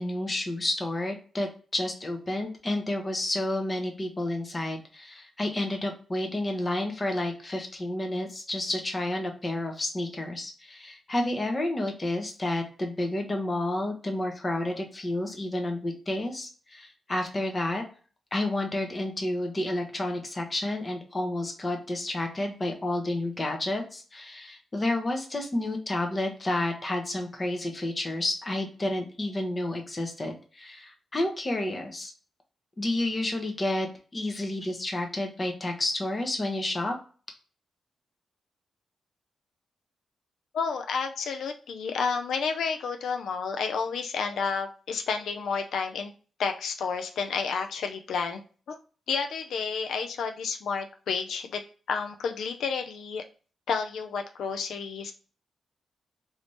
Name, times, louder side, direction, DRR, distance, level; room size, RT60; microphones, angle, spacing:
voice 1, 0.0-17.8 18.3-32.1 32.8-33.9 34.1-36.9, left 1 dB, 20° left, 3 dB, 0.7 m, -30 dB
voice 2, 40.5-46.1 46.4-48.4 48.7-48.8 49.1-53.2 53.7-55.1, left 5 dB, 80° left, 5 dB, 0.4 m, -30 dB
3.3 x 2.7 x 3.0 m, 0.39 s
wide cardioid pair, 140°, 0 cm